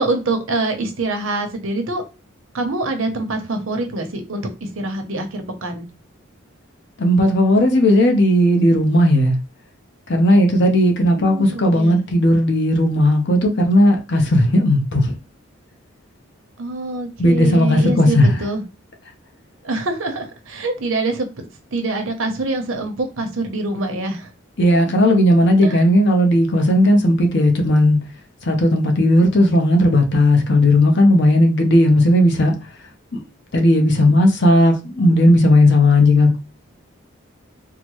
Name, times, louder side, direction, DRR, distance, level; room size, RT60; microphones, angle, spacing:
voice 1, 0.0-2.0 2.5-5.9 11.1-12.0 16.6-18.6 19.6-21.3 21.7-24.3 25.6-25.8, right 2 dB, 75° right, 0.8 m, -25 dB
voice 2, 7.0-9.4 10.1-15.2 17.2-18.3 24.6-28.0 28.4-32.5 33.1-33.2 33.5-36.4, left 1 dB, 55° left, 0.7 m, -15 dB
3.7 x 2.1 x 3.0 m
head